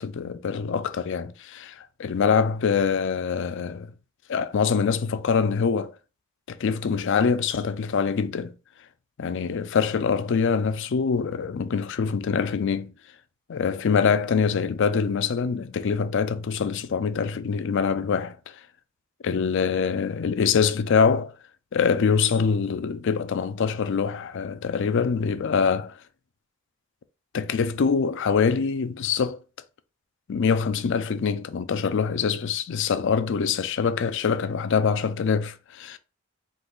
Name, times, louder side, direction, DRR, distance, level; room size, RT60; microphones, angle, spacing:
voice 1, 0.0-3.9 4.3-5.9 6.5-8.5 9.2-12.9 13.5-18.6 19.2-21.3 21.7-26.0 27.3-29.4 30.3-36.0, left 6 dB, 55° left, 0.4 m, -24 dB
3.9 x 2.9 x 3.8 m
head